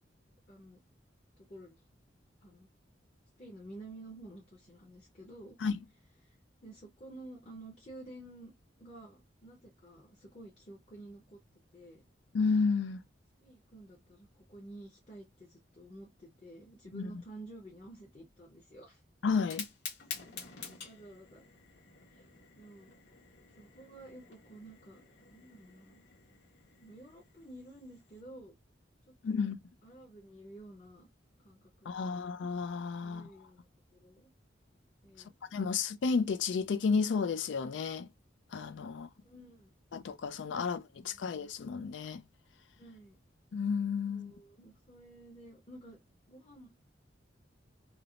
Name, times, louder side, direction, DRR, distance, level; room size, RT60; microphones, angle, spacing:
voice 1, 0.5-0.8 1.4-1.8 2.4-2.7 3.4-5.6 6.2-6.4 6.6-8.5 8.8-11.4 11.7-12.0 13.4-19.0 20.5-21.4 22.1-22.9 23.6-26.0 26.8-28.5 29.1-29.5 29.8-31.1 31.4-32.2 33.0-33.6 33.9-34.3 35.0-35.3 39.2-39.7 41.1-41.2 42.8-43.2 44.1-46.0 46.3-46.7, right 1 dB, 35° left, 0.8 m, -51 dB
voice 2, 12.3-13.0 16.9-17.2 19.2-19.7 29.2-29.6 31.9-33.3 35.5-38.1 38.5-39.1 39.9-42.2 43.5-44.3, left 5 dB, 80° left, 0.4 m, -32 dB
Fire, 19.3-28.2, left 6 dB, 65° left, 1.2 m, -49 dB
3.3 x 2.0 x 2.4 m
head